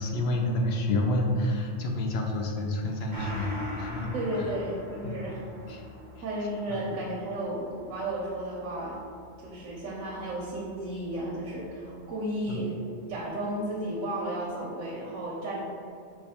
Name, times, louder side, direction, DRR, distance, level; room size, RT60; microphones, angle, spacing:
voice 1, 0.0-4.5 5.0-5.2 5.7-5.8 6.2-6.3 6.7-6.9 12.5-12.6, left 1 dB, 65° left, 1 dB, 0.7 m, -29 dB
Gong, 3.1-12.1 12.4-12.5, left 1 dB, 20° left, 1.0 m, -44 dB
voice 2, 4.1-5.4 6.2-9.0 9.4-12.8 13.1-15.6, right 1 dB, 85° right, -4 dB, 1.1 m, -33 dB
4.8 x 2.2 x 4.1 m, 2.4 s
omnidirectional pair, 1.3 m